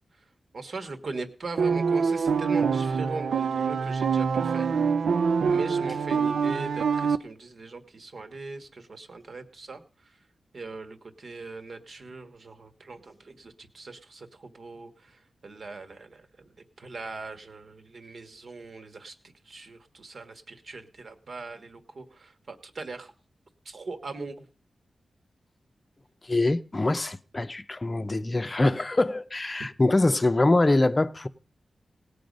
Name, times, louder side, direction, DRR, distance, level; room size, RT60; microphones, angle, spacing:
voice 1, 0.5-4.8 5.4-10.2 10.5-23.1 23.6-24.4, right 3 dB, 55° right, 1.5 m, -40 dB
sound 1, 1.6-7.2, right 5 dB, 90° right, 0.5 m, -25 dB
voice 2, 26.2-31.3, left 2 dB, 25° left, 0.6 m, -24 dB
18.0 x 6.9 x 5.3 m
wide cardioid pair, 85°, 0 cm